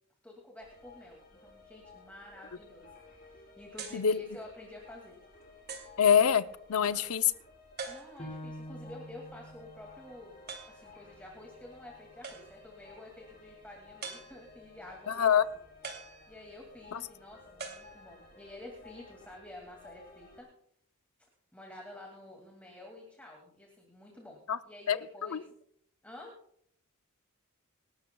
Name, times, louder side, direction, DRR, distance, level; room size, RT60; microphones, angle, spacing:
voice 1, 0.2-5.2 6.7-7.1 7.9-10.4 10.7-15.4 16.3-20.5 21.5-25.5 26.0-26.3, left 1 dB, 5° left, -1 dB, 2.2 m, -50 dB
sound 1, 0.6-20.4, left 3 dB, 45° left, 6.1 m, -56 dB
sound 2, 3.8-4.1 4.8-4.9 5.7-6.0 7.8-8.4 10.5-10.9 12.2-12.7 14.0-14.7 15.8-16.7 17.6-18.4, right 5 dB, 50° right, 2.5 m, -44 dB
voice 2, 3.9-4.2 6.0-6.4 6.7-7.2 15.1-15.4 24.5-24.6 24.9-25.4, left 7 dB, 80° left, 14 dB, 0.6 m, -25 dB
Piano, 8.2-13.4 13.8-13.9 14.5-15.0, equal, 30° left, 3.3 m, -49 dB
26.5 x 12.5 x 2.3 m, 0.67 s
head